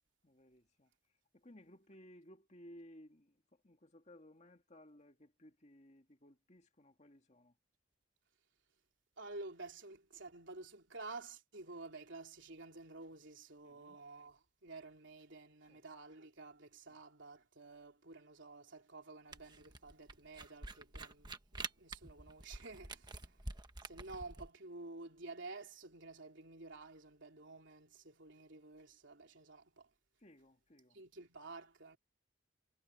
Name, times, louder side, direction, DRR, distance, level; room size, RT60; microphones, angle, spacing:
voice 1, 0.2-0.9 1.3-7.5 13.6-14.0 15.6-15.8 16.9-17.0 30.2-31.0, equal, 35° left, 2.2 m, -60 dB
voice 2, 9.2-23.4 23.8-29.9 30.9-32.0, right 3 dB, 65° right, 3.5 m, -51 dB
Camera, 19.3-24.5, right 3 dB, 20° right, 1.2 m, -47 dB
head